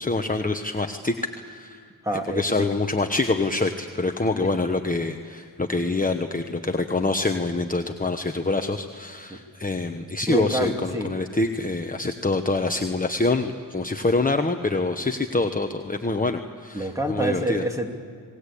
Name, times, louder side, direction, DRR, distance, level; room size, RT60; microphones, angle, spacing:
voice 1, 0.0-1.8 2.3-17.6, left 3 dB, 20° left, 5 dB, 1.1 m, -25 dB
voice 2, 2.0-2.4 9.3-9.4 10.3-11.1 16.7-17.9, right 1 dB, 5° right, 3 dB, 2.7 m, -26 dB
27.5 x 20.0 x 8.5 m, 2.3 s
cardioid pair, 75°, 43 cm